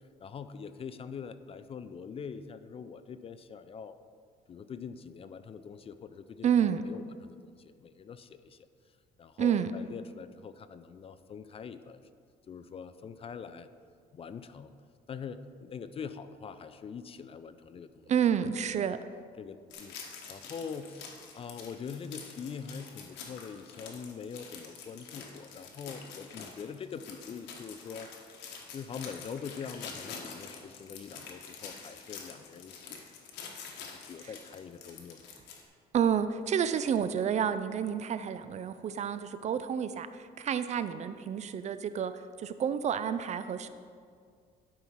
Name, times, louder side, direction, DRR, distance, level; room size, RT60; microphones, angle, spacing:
voice 1, 0.2-4.0 4.5-6.5 6.8-8.7 9.2-12.0 12.5-13.7 14.1-14.7 15.1-18.1 18.7-18.9 19.4-19.9 20.3-28.1 28.7-33.0 33.8-35.2, left 6 dB, 35° left, 12 dB, 0.4 m, -43 dB
voice 2, 6.4-6.9 9.4-9.7 18.1-19.0 35.9-43.7, right 8 dB, 45° right, 12 dB, 0.4 m, -29 dB
sound 1, 19.7-35.6, left 5 dB, 85° left, 1.4 m, -46 dB
11.5 x 5.6 x 4.6 m, 2.2 s
cardioid pair, 110°, 17 cm